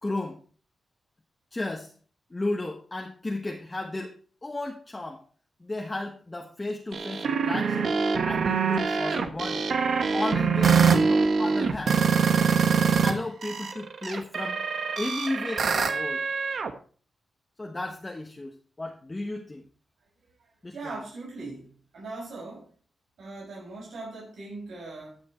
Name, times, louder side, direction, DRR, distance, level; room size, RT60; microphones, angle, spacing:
voice 1, 0.0-0.4 1.5-1.9 2.3-4.1 4.4-5.2 5.6-7.9 8.2-9.7 10.1-12.0 13.0-14.6 15.0-16.2 17.6-19.6 20.6-21.0, left 2 dB, 20° left, 1 dB, 1.3 m, -34 dB
sound 1, 6.9-13.1 13.4-16.7, right 5 dB, 65° right, 1.3 m, -24 dB
voice 2, 20.7-22.7 23.2-25.2, right 3 dB, 80° right, -5 dB, 6.1 m, -40 dB
14.5 x 6.1 x 4.5 m, 0.41 s
cardioid pair, 90°, 0 cm